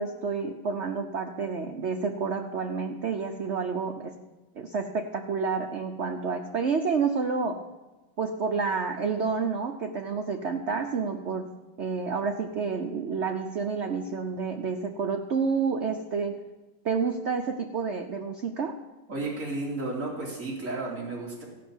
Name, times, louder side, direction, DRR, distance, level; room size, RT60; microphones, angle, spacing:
voice 1, 0.0-4.2 4.6-7.6 8.2-16.4 16.8-18.8, right 5 dB, 85° right, 4 dB, 0.6 m, -29 dB
voice 2, 19.1-21.4, right 2 dB, 40° right, -4 dB, 3.2 m, -33 dB
15.0 x 5.9 x 7.1 m, 1.1 s
omnidirectional pair, 2.1 m